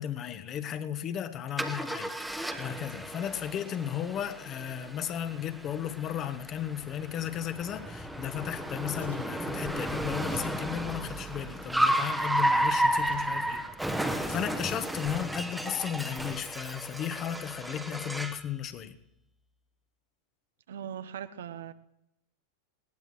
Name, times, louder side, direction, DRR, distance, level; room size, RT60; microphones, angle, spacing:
voice 1, 0.0-13.7 13.9-19.0, left 10 dB, 30° left, 10 dB, 1.1 m, -35 dB
Car, 1.6-18.5, right 1 dB, 5° right, 1.0 m, -33 dB
sound 1, 8.1-8.2 8.5-9.4 10.2-10.6 11.3-12.4 13.0-13.6 13.9-15.0 15.3-15.5, left 5 dB, 65° left, 2.4 m, -50 dB
voice 2, 20.7-21.7, right 9 dB, 60° right, 12 dB, 0.7 m, -39 dB
20.5 x 17.5 x 3.2 m, 0.83 s
figure-of-eight pair, 90°, 0 cm